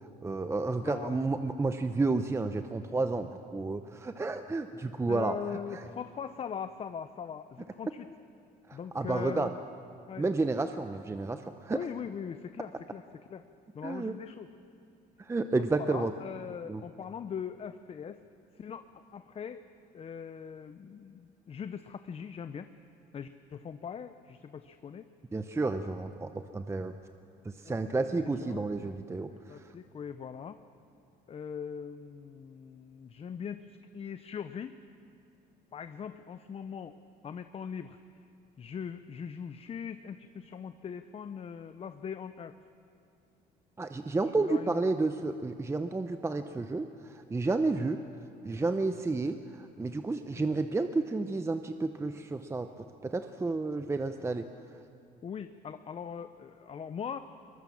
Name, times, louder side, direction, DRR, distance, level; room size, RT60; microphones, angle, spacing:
voice 1, 0.2-5.4 5.7-5.9 8.7-9.5 10.2-11.8 13.8-14.2 15.2-16.1 16.7-16.8 25.3-27.0 27.4-29.7 43.8-48.0 48.4-54.4, right 3 dB, 15° right, 8 dB, 0.7 m, -31 dB
voice 2, 0.8-1.2 4.8-8.1 8.7-9.6 10.1-10.2 11.7-13.0 13.3-13.4 13.7-14.5 15.6-18.2 18.6-19.6 19.9-22.7 23.1-25.1 27.6-27.9 28.2-28.9 29.5-30.6 31.3-34.8 35.7-37.0 37.2-38.0 38.6-42.6 44.4-44.8 47.8-47.9 55.2-57.2, left 7 dB, 35° left, 10 dB, 0.7 m, -41 dB
22.0 x 21.0 x 7.2 m, 2.5 s
cardioid pair, 110°, 17 cm